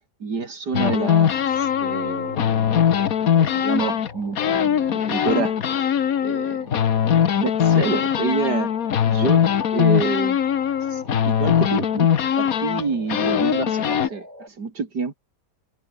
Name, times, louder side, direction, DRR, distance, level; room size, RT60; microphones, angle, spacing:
voice 1, 0.2-2.4 3.3-5.6 6.2-6.7 7.4-8.7 9.0-9.5 9.7-10.4 10.9-12.1 12.4-15.2, right 4 dB, 70° right, 3.3 m, -27 dB
sound 1, 0.7-4.1 4.4-14.1, left 8 dB, 60° left, 1.5 m, -21 dB
sound 2, 1.4-14.5, left 1 dB, 25° left, 6.9 m, -46 dB
omnidirectional pair, 1.8 m